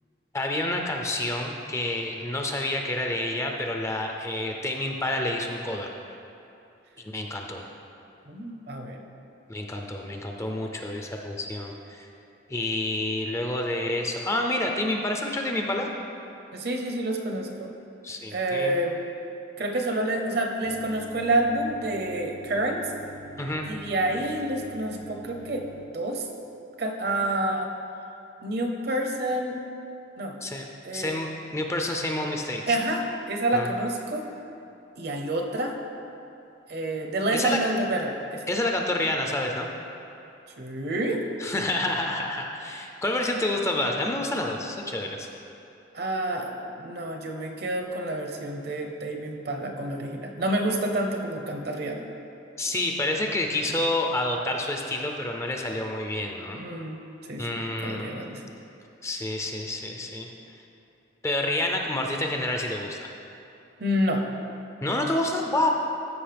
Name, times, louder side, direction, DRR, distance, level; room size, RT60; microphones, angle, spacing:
voice 1, 0.3-6.2 7.0-7.6 9.5-12.1 12.5-15.9 18.0-18.7 23.4-23.7 30.4-30.6 30.9-32.8 33.5-33.7 37.3-37.6 38.5-39.7 41.4-45.3 52.6-56.7 57.4-58.2 59.0-60.3 61.2-63.1 64.8-65.7, left 1 dB, 15° left, 2 dB, 0.5 m, -28 dB
voice 2, 8.3-9.0 16.5-17.7 18.3-19.0 19.6-22.9 23.7-25.7 25.9-26.3 26.8-27.7 28.4-29.6 30.2-30.4 30.8-31.1 32.7-34.3 35.0-35.7 36.7-38.4 40.6-41.2 45.9-52.0 56.5-57.0 57.3-57.5 57.8-58.4 63.8-64.2, right 1 dB, 55° right, 2 dB, 0.8 m, -28 dB
sound 1, 20.6-25.9, equal, 75° left, 0.8 m, -45 dB
13.5 x 5.3 x 3.4 m, 2.8 s
head